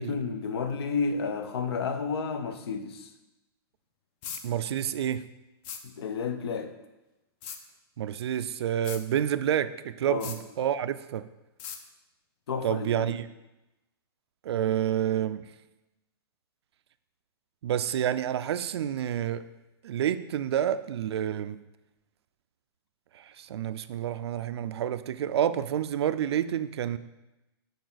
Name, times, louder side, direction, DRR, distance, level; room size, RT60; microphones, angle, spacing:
voice 1, 0.0-3.1 5.8-6.7 10.1-10.3 12.5-13.1, left 5 dB, 75° left, 9 dB, 0.7 m, -31 dB
sound 1, 4.2-4.4 5.6-5.8 7.4-7.6 8.8-9.0 10.2-10.4 11.6-11.8, left 7 dB, 30° left, 0.4 m, -38 dB
voice 2, 4.4-5.3 8.0-11.2 12.6-13.3 14.4-15.5 17.6-19.4 19.8-21.6 23.1-27.0, right 10 dB, 85° right, 13 dB, 0.4 m, -29 dB
6.8 x 4.3 x 4.0 m, 1.0 s
hypercardioid pair, 165°, 13 cm